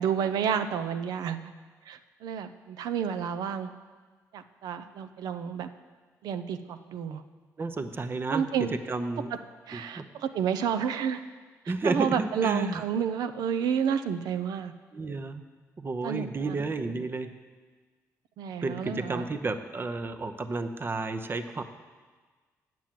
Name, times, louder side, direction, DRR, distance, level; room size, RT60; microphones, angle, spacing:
voice 1, 0.0-1.5 1.9-3.7 4.3-5.7 6.2-7.2 8.3-8.7 9.3-9.4 9.7-11.2 11.6-14.7 16.0-16.6 18.4-19.3, right 7 dB, 80° right, 10 dB, 0.5 m, -30 dB
voice 2, 7.6-8.5 8.9-9.3 9.7-10.0 11.7-12.8 14.9-15.4 15.8-17.3 18.6-21.6, right 3 dB, 35° right, 8 dB, 0.7 m, -31 dB
8.4 x 7.6 x 7.4 m, 1.4 s
cardioid pair, 75°, 7 cm